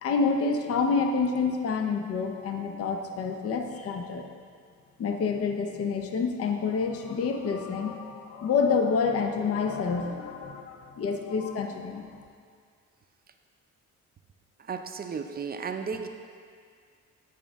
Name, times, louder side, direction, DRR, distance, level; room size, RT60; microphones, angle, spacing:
voice 1, 0.0-4.3 5.0-12.2, left 5 dB, 50° left, 4 dB, 0.7 m, -28 dB
voice 2, 14.6-16.1, right 5 dB, 30° right, 6 dB, 0.5 m, -34 dB
9.2 x 5.0 x 3.5 m, 2.2 s
cardioid pair, 90°, 30 cm